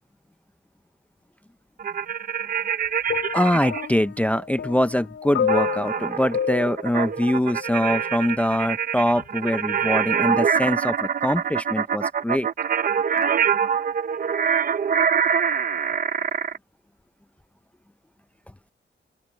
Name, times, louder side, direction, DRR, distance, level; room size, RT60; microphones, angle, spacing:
sound 1, 1.8-3.9 5.5-16.6, right 7 dB, 45° right, 0.7 m, -25 dB
sound 2, 3.1-8.2 9.1-9.3, left 8 dB, 90° left, 4.1 m, -30 dB
voice 1, 3.3-12.5, left 1 dB, 5° left, 0.5 m, -23 dB
open air
wide cardioid pair, 155°, 20 cm